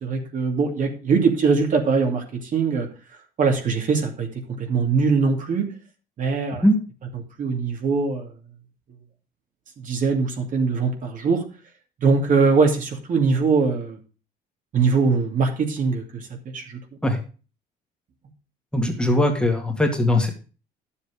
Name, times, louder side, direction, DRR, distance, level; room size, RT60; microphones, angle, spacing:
voice 1, 0.0-2.9 3.4-4.3 4.6-5.7 6.2-6.6 7.4-8.3 9.8-11.4 12.0-14.0 14.7-16.8, right 4 dB, 50° right, 3 dB, 2.6 m, -22 dB
voice 2, 18.7-20.3, left 1 dB, 5° left, 3 dB, 1.9 m, -20 dB
11.0 x 7.2 x 5.0 m, 0.35 s
cardioid pair, 110°, 17 cm